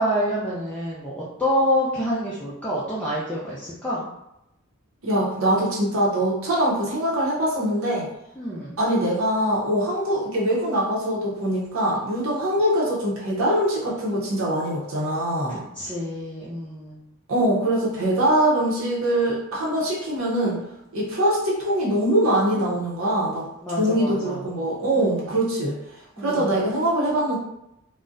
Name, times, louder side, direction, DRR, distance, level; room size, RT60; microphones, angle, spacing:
voice 1, 0.0-4.1 8.4-8.8 15.5-17.0 23.6-24.5 25.0-25.4 26.2-26.6, equal, 5° left, -9 dB, 0.4 m, -27 dB
voice 2, 5.0-8.1 8.8-15.6 17.3-20.6 20.9-25.8 26.2-27.4, right 1 dB, 70° right, -5 dB, 0.7 m, -23 dB
3.7 x 2.1 x 2.5 m, 0.87 s
head